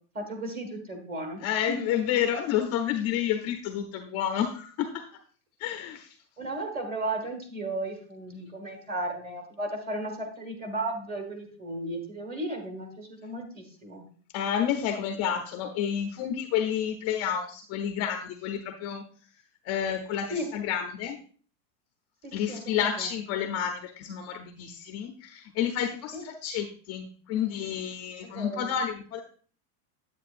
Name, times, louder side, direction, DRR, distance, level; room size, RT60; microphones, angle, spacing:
voice 1, 0.1-1.8 6.4-14.1 20.3-20.5 22.2-23.1 26.1-26.2 28.2-28.7, right 1 dB, 20° right, 5 dB, 1.5 m, -35 dB
voice 2, 1.4-5.1 5.6-6.2 14.3-19.0 19.6-21.2 22.3-29.2, left 9 dB, 35° left, 5 dB, 0.6 m, -30 dB
9.3 x 8.2 x 2.5 m, 0.43 s
supercardioid pair, 155°, 47 cm